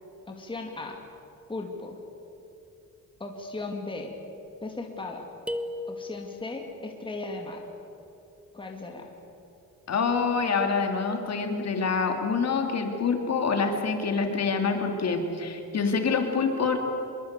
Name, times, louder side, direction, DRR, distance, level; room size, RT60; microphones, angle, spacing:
voice 1, 0.3-1.0 1.5-2.0 3.2-4.1 4.6-5.3 5.9-7.6 8.5-9.1, left 2 dB, 15° left, 2 dB, 2.4 m, -36 dB
sound 1, 5.5-6.6, left 1 dB, 5° right, 1.1 m, -35 dB
voice 2, 9.9-16.8, left 5 dB, 45° left, 4 dB, 3.0 m, -26 dB
25.5 x 22.5 x 8.3 m, 2.9 s
cardioid pair, 145°, 35 cm